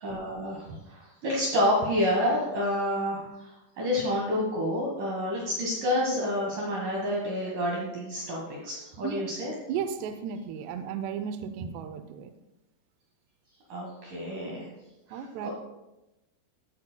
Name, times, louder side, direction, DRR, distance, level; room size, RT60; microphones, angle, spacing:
voice 1, 0.0-3.5 3.8-9.5 13.7-14.7 15.1-15.5, left 1 dB, 60° right, -3 dB, 2.6 m, -29 dB
voice 2, 9.7-12.3 15.1-15.5, right 8 dB, 80° right, 9 dB, 2.6 m, -34 dB
16.0 x 8.5 x 2.2 m, 0.97 s
omnidirectional pair, 5.0 m